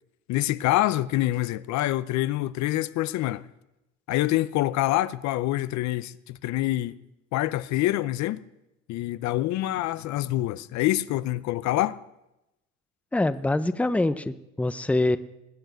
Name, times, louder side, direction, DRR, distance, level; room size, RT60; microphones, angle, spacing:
voice 1, 0.3-3.5 4.1-7.0 7.3-8.4 8.9-12.0, left 15 dB, 65° left, 0.7 m, -26 dB
voice 2, 13.1-15.2, left 2 dB, 5° left, 0.7 m, -24 dB
20.0 x 8.0 x 9.1 m
cardioid pair, 105°, 30 cm